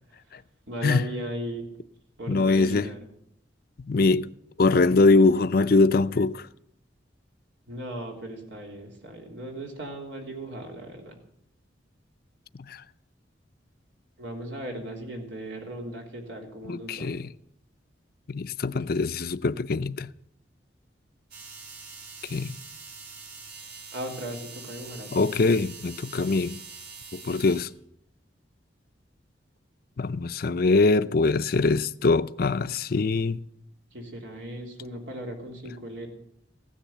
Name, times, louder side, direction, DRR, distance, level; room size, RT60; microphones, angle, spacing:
voice 1, 0.7-1.7 2.2-3.0 7.7-11.2 14.2-17.1 23.9-25.3 33.9-36.1, right 1 dB, 85° right, 3.5 m, -37 dB
voice 2, 2.3-2.9 3.9-4.3 4.6-6.4 12.7-12.8 16.7-17.3 18.3-20.1 22.3-22.5 25.1-26.6 27.1-27.7 30.0-33.4, left 3 dB, 55° left, 0.5 m, -23 dB
sound 1, 21.3-27.7, right 5 dB, 60° right, 3.5 m, -44 dB
16.0 x 10.5 x 8.0 m
head